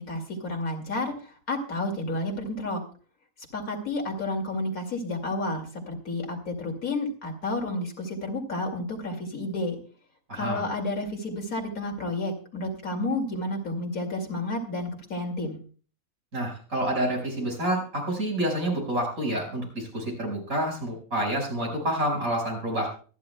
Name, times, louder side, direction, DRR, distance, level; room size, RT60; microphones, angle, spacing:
voice 1, 0.0-2.8 3.5-9.8 10.3-15.6, left 2 dB, 85° left, 2 dB, 2.9 m, -31 dB
voice 2, 10.3-10.6 16.3-22.9, right 1 dB, 75° right, 0 dB, 5.7 m, -28 dB
24.5 x 10.5 x 2.2 m, 0.40 s
omnidirectional pair, 1.4 m